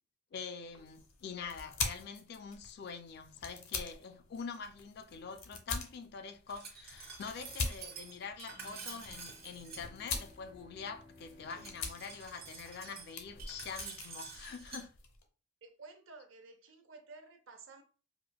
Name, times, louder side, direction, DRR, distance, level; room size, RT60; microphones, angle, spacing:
voice 1, 0.3-14.9, left 5 dB, 50° left, 0.3 m, -45 dB
sound 1, 0.7-15.2, left 4 dB, 80° left, 0.7 m, -44 dB
Glass, 6.5-9.8 11.5-14.8, right 5 dB, 50° right, 1.0 m, -48 dB
Bowed string instrument, 8.5-13.5, left 2 dB, 10° right, 0.5 m, -61 dB
voice 2, 15.6-17.8, right 3 dB, 70° right, 0.6 m, -53 dB
4.9 x 2.2 x 2.3 m
head